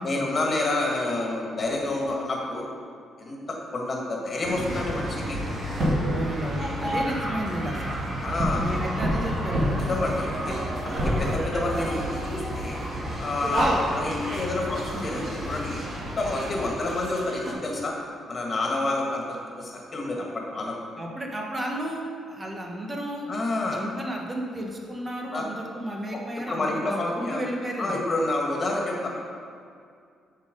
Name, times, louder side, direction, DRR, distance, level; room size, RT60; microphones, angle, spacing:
voice 1, 0.0-2.7 3.2-5.4 8.2-8.6 9.9-10.5 10.8-12.8 13.2-13.7 13.9-15.9 16.2-17.9 18.3-20.7 23.3-23.8 25.3-25.4 26.5-27.4 27.8-29.1, left 2 dB, 35° left, -1 dB, 1.9 m, -28 dB
sound 1, 4.4-17.5, equal, 50° right, 2.2 m, -29 dB
voice 2, 6.1-7.9 8.6-9.7 21.0-23.3 23.7-28.0, right 1 dB, 25° right, 0 dB, 1.2 m, -33 dB
7.7 x 5.6 x 5.3 m, 2.3 s
cardioid pair, 90°, 0 cm